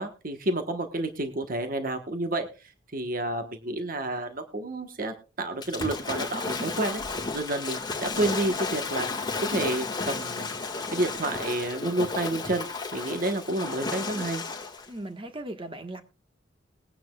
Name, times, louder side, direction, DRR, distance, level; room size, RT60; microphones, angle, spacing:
voice 1, 0.0-2.5 2.9-7.0 7.3-10.5 10.9-14.4, right 2 dB, 50° right, 1.2 m, -30 dB
Waves surf / Splash splatter, 5.6-14.9, left 4 dB, 25° left, 1.9 m, -33 dB
voice 2, 14.9-16.0, right 1 dB, 30° right, 1.4 m, -37 dB
21.0 x 9.4 x 2.3 m
head